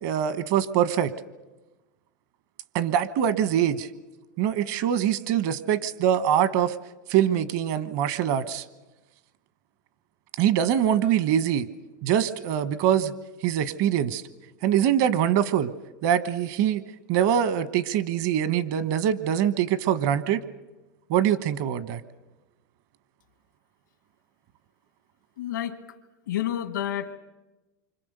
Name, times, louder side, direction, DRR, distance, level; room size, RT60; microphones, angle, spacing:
voice 1, 0.0-1.1 2.7-3.9 4.4-6.8 7.1-8.6 10.4-11.7 12.0-13.1 13.4-14.2 14.6-15.7 16.0-16.8 17.1-20.4 21.1-22.0, right 10 dB, 60° right, 14 dB, 1.2 m, -23 dB
voice 2, 25.4-25.8 26.3-27.1, left 11 dB, 90° left, 9 dB, 1.7 m, -29 dB
27.5 x 25.5 x 6.8 m, 1.1 s
hypercardioid pair, 110°, 10 cm